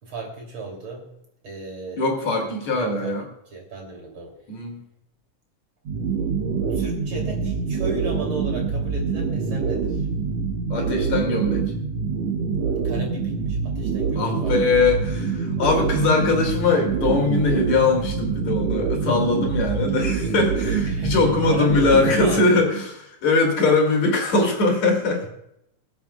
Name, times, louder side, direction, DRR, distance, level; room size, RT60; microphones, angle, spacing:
voice 1, 0.0-1.1 1.4-2.0 2.7-3.1 3.5-4.4 6.7-10.1 12.8-14.6 20.9-22.7, right 3 dB, 45° right, 0 dB, 3.7 m, -35 dB
voice 2, 2.0-3.2 4.5-4.8 10.7-11.7 14.2-25.3, left 3 dB, 65° left, 1 dB, 4.0 m, -21 dB
sound 1, 5.9-22.4, right 5 dB, 65° right, 2.2 m, -25 dB
24.0 x 8.9 x 2.3 m, 0.78 s
omnidirectional pair, 3.4 m